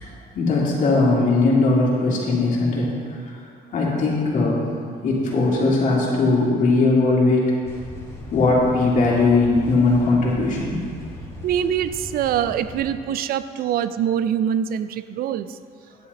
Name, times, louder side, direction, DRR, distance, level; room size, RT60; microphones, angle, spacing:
voice 1, 0.3-3.2 3.7-4.6 5.0-7.5 8.3-10.8, left 3 dB, 50° left, -4 dB, 2.6 m, -19 dB
sound 1, 7.7-12.9, left 1 dB, 15° left, 1.9 m, -38 dB
voice 2, 11.4-15.6, right 9 dB, 60° right, 13 dB, 0.4 m, -24 dB
10.0 x 7.9 x 4.1 m, 2.2 s
cardioid pair, 110°, 17 cm